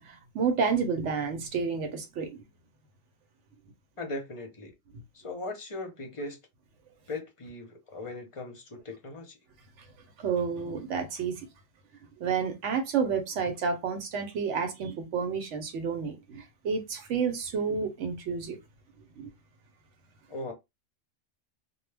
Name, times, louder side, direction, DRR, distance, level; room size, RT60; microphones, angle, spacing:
voice 1, 0.0-2.4 9.8-9.9 10.2-11.5 12.2-18.6 19.2-19.3, right 6 dB, 70° right, 0.9 m, -30 dB
voice 2, 4.0-4.7 5.1-6.4 7.1-9.4 20.3-20.5, left 2 dB, 35° left, 0.5 m, -38 dB
2.2 x 2.2 x 3.2 m
omnidirectional pair, 1.3 m